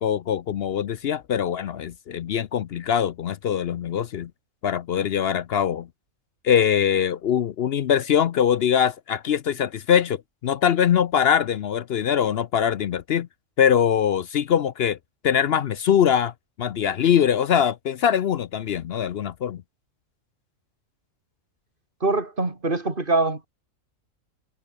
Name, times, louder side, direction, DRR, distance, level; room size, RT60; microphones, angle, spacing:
voice 1, 0.0-4.3 4.6-5.9 6.4-13.3 13.6-15.0 15.2-16.3 16.6-19.6, left 8 dB, 60° left, 0.7 m, -22 dB
voice 2, 22.0-23.5, right 2 dB, 40° right, 3.4 m, -23 dB
omnidirectional pair, 1.4 m